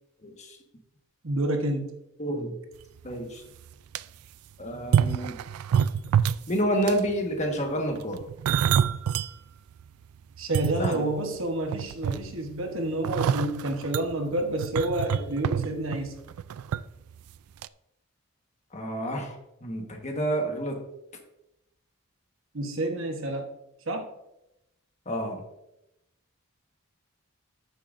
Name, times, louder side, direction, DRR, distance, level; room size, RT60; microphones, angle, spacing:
voice 1, 0.2-0.6 2.2-2.6 3.0-3.4 4.6-5.4 6.5-8.2 10.8-11.1 18.7-20.8 25.0-25.4, right 1 dB, 30° left, 2 dB, 1.4 m, -29 dB
voice 2, 1.2-1.9 10.4-16.2 22.5-23.5 23.9-24.1, right 1 dB, 60° right, 4 dB, 1.1 m, -29 dB
sound 1, 3.1-3.2 3.6-4.0 4.8-6.5 6.8-7.1 8.0-9.3 9.8-9.9 10.4-11.4 11.7-12.5 13.0-16.8 17.1-17.3 17.6-17.7, right 8 dB, 85° right, 0.3 m, -27 dB
13.5 x 6.9 x 2.6 m, 0.88 s
head